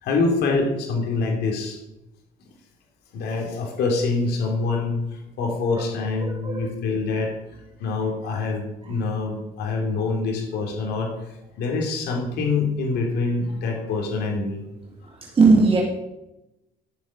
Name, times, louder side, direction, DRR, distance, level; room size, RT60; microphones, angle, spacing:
voice 1, 0.0-1.8 3.1-7.3 7.8-11.1 11.6-14.6, left 3 dB, 75° left, 1 dB, 3.0 m, -25 dB
voice 2, 6.2-6.7 15.1-15.8, right 4 dB, 35° right, -1 dB, 2.0 m, -19 dB
13.5 x 7.2 x 6.0 m, 0.93 s
cardioid pair, 110°, 17 cm